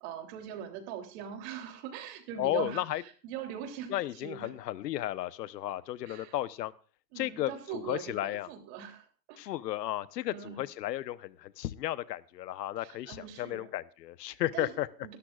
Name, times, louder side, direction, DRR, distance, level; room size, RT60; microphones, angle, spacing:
voice 1, 0.0-4.0 4.2-4.5 6.1-6.4 7.1-9.4 10.3-10.6 12.8-13.7 14.5-14.7 15.0-15.2, right 9 dB, 45° right, 5 dB, 3.2 m, -41 dB
voice 2, 2.4-3.0 3.9-6.7 7.1-8.5 9.4-14.9, left 14 dB, 80° left, 16 dB, 1.0 m, -34 dB
21.5 x 13.0 x 2.4 m, 0.36 s
supercardioid pair, 150°, 48 cm